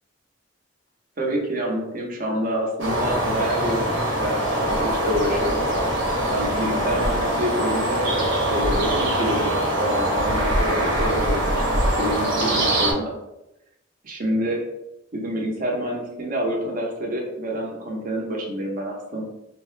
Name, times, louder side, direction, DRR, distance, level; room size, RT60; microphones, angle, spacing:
voice 1, 1.2-5.6 6.3-13.1 14.0-14.6 15.1-19.2, equal, 45° right, -1 dB, 0.7 m, -27 dB
sound 1, 2.8-12.9, right 1 dB, 70° right, 0.9 m, -23 dB
3.1 x 2.0 x 3.1 m, 0.89 s
head